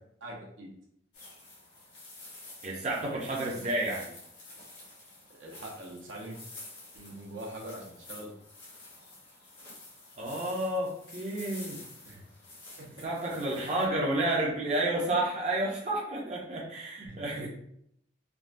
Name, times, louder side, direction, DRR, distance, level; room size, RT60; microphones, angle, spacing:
voice 1, 0.2-0.7 5.3-6.4 6.9-8.3 12.1-12.2 12.8-13.0 17.0-17.5, right 1 dB, 80° right, -1 dB, 0.7 m, -43 dB
sound 1, 1.1-13.9, left 2 dB, 75° left, 1.2 m, -49 dB
voice 2, 2.6-4.1 10.2-11.8 13.0-17.5, right 1 dB, 35° right, -3 dB, 0.5 m, -30 dB
3.5 x 2.1 x 2.5 m, 0.72 s
head